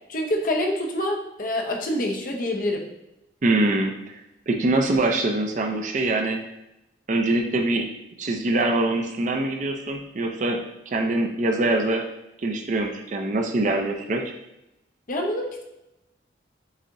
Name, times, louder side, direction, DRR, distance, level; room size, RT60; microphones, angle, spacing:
voice 1, 0.1-2.8 15.1-15.6, left 1 dB, 45° left, 2 dB, 0.6 m, -26 dB
voice 2, 3.4-4.2 4.5-6.4 7.1-7.9 8.2-10.6 10.9-12.0 12.4-14.3, right 2 dB, 40° right, 3 dB, 0.4 m, -24 dB
7.0 x 2.8 x 2.6 m, 0.90 s
head